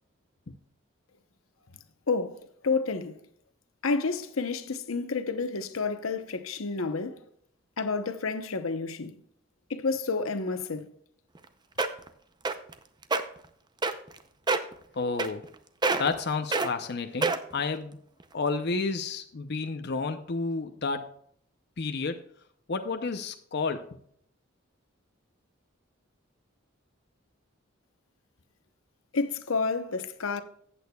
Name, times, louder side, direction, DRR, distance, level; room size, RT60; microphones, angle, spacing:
voice 1, 2.1-3.2 3.8-7.2 7.8-9.2 9.7-10.9 29.1-30.4, left 4 dB, 90° left, 0.9 m, -30 dB
sound 1, 11.4-11.5 11.8-12.1 12.5-12.7 13.0-13.2 13.8-14.2 14.5-14.7 15.2-15.6 15.8-16.2 16.5-16.7 17.2-17.6 18.2-18.3, right 3 dB, 20° right, 0.6 m, -26 dB
voice 2, 14.9-15.5 16.0-18.0 18.3-21.1 21.8-22.3 22.7-23.9, left 4 dB, 55° left, 0.7 m, -31 dB
15.0 x 8.5 x 2.3 m
head